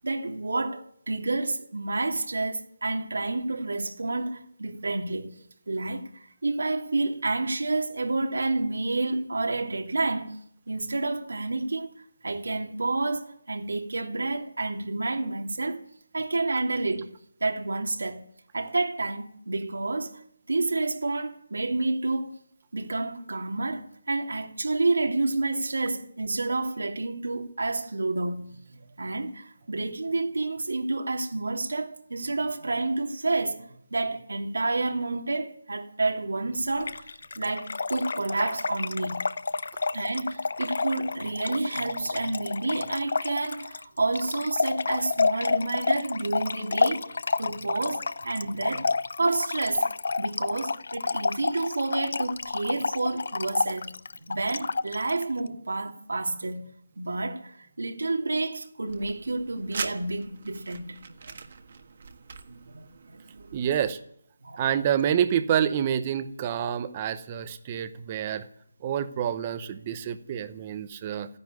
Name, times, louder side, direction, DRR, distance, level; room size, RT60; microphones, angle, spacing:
voice 1, 0.0-5.4 5.7-10.4 10.7-11.9 12.2-15.8 16.1-18.2 18.5-20.2 20.5-22.4 22.7-37.1 37.4-39.2 39.9-49.9 50.2-53.9 54.3-56.6 57.0-61.0 61.3-61.4 62.5-63.5 64.4-64.9, right 2 dB, 80° right, 2.8 m, -29 dB
Trickle dribble / Fill (with liquid), 36.8-55.2, left 4 dB, 50° left, 0.6 m, -29 dB
sound 1, 58.9-63.9, right 5 dB, 35° right, 1.5 m, -41 dB
voice 2, 63.5-64.0 64.6-68.5 68.8-71.3, right 9 dB, 15° right, 0.8 m, -27 dB
14.5 x 10.5 x 9.6 m
hypercardioid pair, 175°, 0 cm